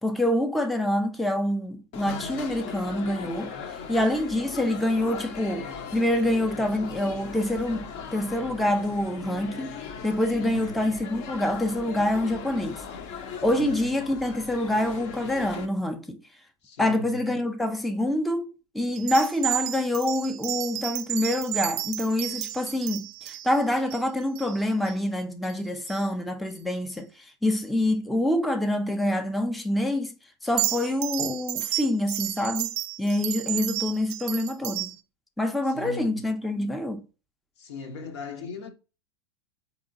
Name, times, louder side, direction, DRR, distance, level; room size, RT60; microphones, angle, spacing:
voice 1, 0.0-3.5 3.9-9.8 10.0-12.8 13.4-16.2 16.8-30.1 30.4-32.7 33.0-35.0 35.4-37.0, left 1 dB, ahead, 0.4 m, -26 dB
sound 1, 1.9-15.7, left 6 dB, 50° left, 0.6 m, -38 dB
voice 2, 10.3-10.8 13.4-13.8 16.6-17.2 35.7-36.2 37.6-38.7, left 4 dB, 75° left, 0.9 m, -38 dB
sound 2, 18.9-24.9 25.4-25.6 25.9-26.0 30.4-35.0, right 16 dB, 65° right, 0.4 m, -32 dB
3.6 x 2.9 x 2.5 m
hypercardioid pair, 105°, 15 cm